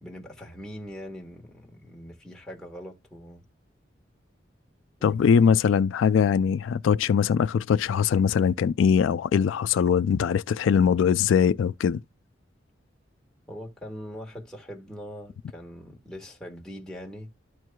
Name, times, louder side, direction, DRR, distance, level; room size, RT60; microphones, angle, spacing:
voice 1, 0.0-3.4 5.0-5.7 13.5-17.3, equal, 5° left, 1.4 m, -42 dB
voice 2, 5.0-12.0, left 7 dB, 80° left, 0.3 m, -21 dB
13.0 x 4.5 x 2.3 m
head